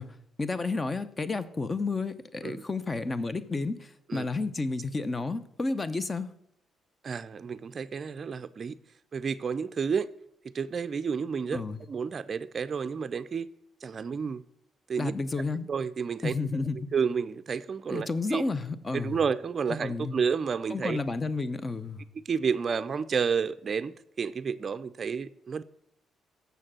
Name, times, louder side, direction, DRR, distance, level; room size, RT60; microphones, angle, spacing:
voice 1, 0.0-6.3 11.5-11.8 15.0-15.7 16.2-16.9 17.9-19.2 19.8-20.2 20.7-22.1, left 3 dB, 25° left, 0.7 m, -31 dB
voice 2, 7.0-8.8 9.1-10.1 10.5-13.5 13.8-14.4 14.9-15.1 15.7-16.3 16.9-18.4 18.9-21.0 22.3-25.6, right 6 dB, 45° right, 0.4 m, -30 dB
6.9 x 6.4 x 7.5 m
cardioid pair, 90°, 0 cm